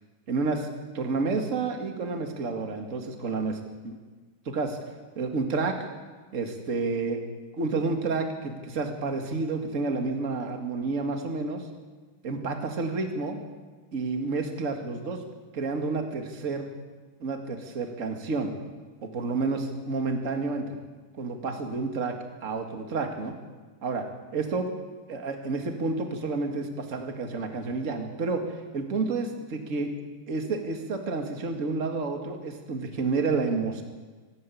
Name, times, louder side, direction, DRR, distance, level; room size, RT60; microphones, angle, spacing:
voice 1, 0.3-0.7 0.9-3.6 3.8-3.9 4.5-4.8 5.2-5.7 6.3-7.2 7.6-11.6 12.2-13.4 13.9-15.2 15.5-16.7 17.2-18.5 19.0-20.8 21.2-22.1 22.4-23.4 23.8-24.0 24.3-24.7 25.1-28.4 28.7-29.9 30.3-33.8, right 3 dB, 30° right, 4 dB, 1.9 m, -30 dB
24.5 x 12.5 x 8.6 m, 1.3 s
omnidirectional pair, 3.9 m